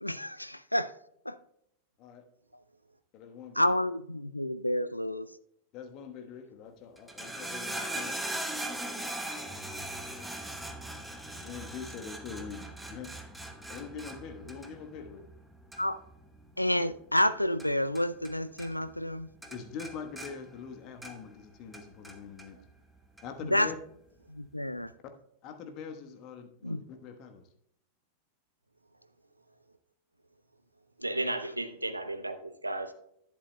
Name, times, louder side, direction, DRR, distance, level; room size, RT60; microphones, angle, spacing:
voice 1, 0.0-0.9 1.3-1.4 3.6-5.3 15.8-16.0 16.6-19.3 23.5-23.7 24.3-24.9 26.6-26.8, left 1 dB, 85° left, 0.3 m, -29 dB
voice 2, 3.1-3.8 5.7-8.2 11.4-13.1 13.7-15.3 19.5-22.6 23.2-23.8 25.4-27.5, left 6 dB, 40° left, 1.2 m, -43 dB
sound 1, 7.0-18.3 18.6-19.1 19.4-21.4 21.7-22.5 23.2-23.3, right 1 dB, 5° right, 0.9 m, -40 dB
voice 3, 31.0-32.9, right 2 dB, 85° right, 0.6 m, -34 dB
11.0 x 10.0 x 2.2 m
figure-of-eight pair, 90°, 0 cm